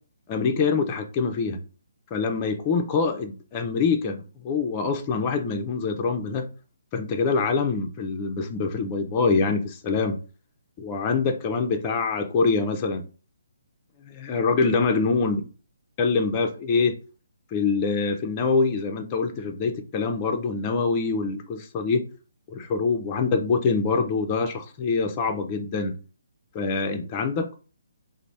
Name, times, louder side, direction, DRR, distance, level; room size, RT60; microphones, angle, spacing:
voice 1, 0.3-1.6 2.1-6.5 6.9-10.2 10.8-13.0 14.0-15.4 16.0-17.0 17.5-22.0 22.5-25.9 26.5-27.5, left 4 dB, 20° left, 0.4 m, -25 dB
3.2 x 2.0 x 4.0 m
hypercardioid pair, 160°, 0 cm